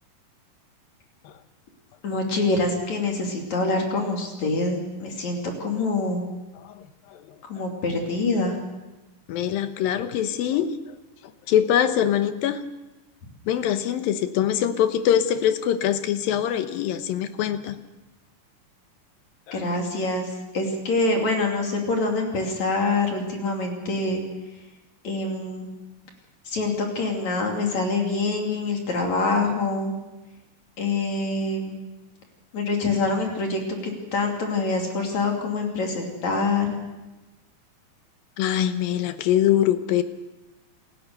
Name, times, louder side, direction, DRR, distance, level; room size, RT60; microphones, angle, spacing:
voice 1, 2.0-6.2 7.4-8.6 19.5-24.2 25.0-25.7 26.5-29.9 30.8-31.8 32.5-36.8, left 3 dB, 55° left, 1 dB, 4.0 m, -25 dB
voice 2, 9.3-10.8 11.5-12.6 13.5-17.7 19.5-19.6 38.4-40.0, left 10 dB, 85° left, 10 dB, 2.9 m, -23 dB
28.0 x 15.0 x 6.8 m, 1.1 s
omnidirectional pair, 4.0 m